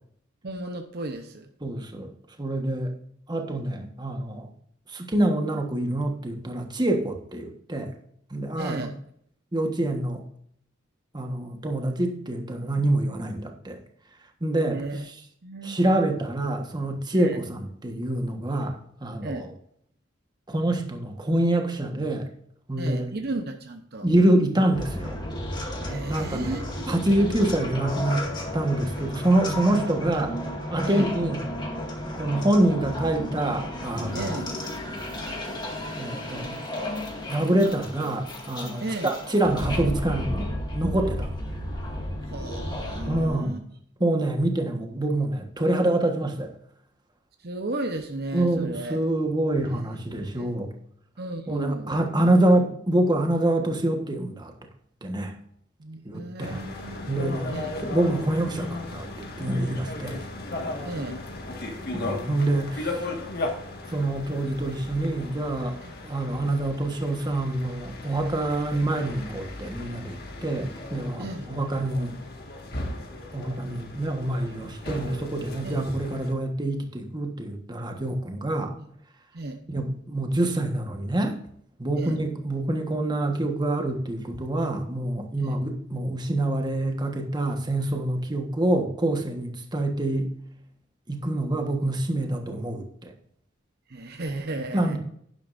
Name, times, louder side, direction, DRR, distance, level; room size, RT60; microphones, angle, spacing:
voice 1, 0.4-1.5 8.6-9.0 14.7-15.1 15.4-15.8 17.1-17.4 19.2-19.5 22.8-24.1 25.8-26.8 30.8-31.1 34.1-34.5 38.8-39.1 42.3-43.6 47.4-49.0 49.6-49.9 50.3-50.6 51.2-51.9 55.8-57.1 57.5-57.7 60.8-61.2 65.8-65.9 71.2-71.4 75.6-75.9 78.8-78.9 79.3-79.6 81.9-82.2 85.4-85.6 93.9-95.0, right 2 dB, 50° right, 5 dB, 0.9 m, -34 dB
voice 2, 1.6-2.1 2.4-2.9 3.3-4.5 4.9-7.9 8.3-8.9 9.5-10.2 11.1-13.8 14.4-14.8 15.6-19.5 20.5-22.3 22.7-23.1 24.0-25.2 26.1-26.6 26.9-28.3 28.5-30.4 30.7-31.4 32.2-34.3 36.0-36.6 37.3-41.3 43.1-43.6 44.0-46.5 48.3-50.7 51.5-54.5 55.0-55.3 56.0-56.6 57.1-60.2 61.9-63.0 63.9-65.8 66.0-72.2 73.3-78.7 79.7-81.4 81.8-90.3 91.1-93.1 94.7-95.0, right 1 dB, 20° right, 4 dB, 1.3 m, -26 dB
sound 1, 24.7-43.3, left 1 dB, 20° left, 2.0 m, -33 dB
sound 2, 56.4-76.3, left 2 dB, 50° left, 1.8 m, -36 dB
10.5 x 10.5 x 2.6 m, 0.66 s
head